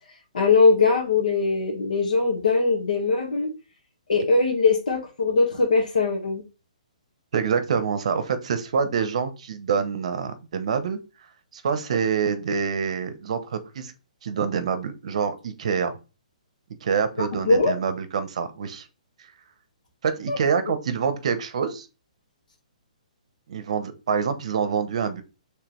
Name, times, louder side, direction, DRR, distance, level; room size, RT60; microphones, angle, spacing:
voice 1, 0.3-3.5 4.1-6.4 17.2-17.7 20.3-20.4, left 3 dB, 80° left, 1.4 m, -21 dB
voice 2, 7.3-11.0 11.5-13.9 14.2-16.0 16.8-18.9 20.0-21.9 23.5-25.2, right 6 dB, 55° right, 0.8 m, -26 dB
5.0 x 3.4 x 3.0 m
hypercardioid pair, 165°, 4 cm